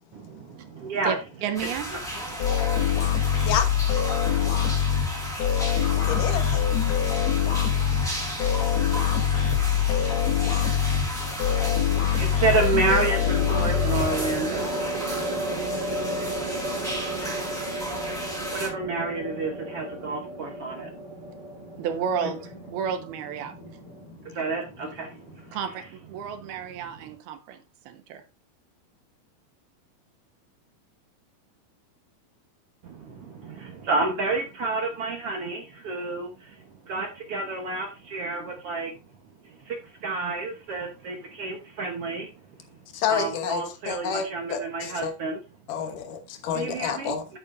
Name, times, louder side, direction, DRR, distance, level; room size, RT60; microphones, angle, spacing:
voice 1, 0.1-1.1 2.3-2.7 11.4-15.0 18.1-18.2 18.5-20.9 22.2-22.3 24.0-25.6 32.8-38.9 39.4-42.3 43.1-45.4 46.5-47.4, right 3 dB, 75° right, 1.3 m, -30 dB
voice 2, 1.4-1.9 21.8-23.5 25.5-28.2, right 7 dB, 90° right, 3.1 m, -31 dB
sound 1, 1.5-18.7, equal, ahead, 4.9 m, -35 dB
sound 2, 2.4-14.6, left 9 dB, 85° left, 3.8 m, -24 dB
voice 3, 6.1-6.4 17.2-17.3 42.9-45.1 45.7-47.2, left 7 dB, 65° left, 2.5 m, -29 dB
sound 3, 9.6-10.1 12.7-24.1, right 1 dB, 40° right, 1.6 m, -34 dB
10.5 x 8.8 x 2.6 m
omnidirectional pair, 4.4 m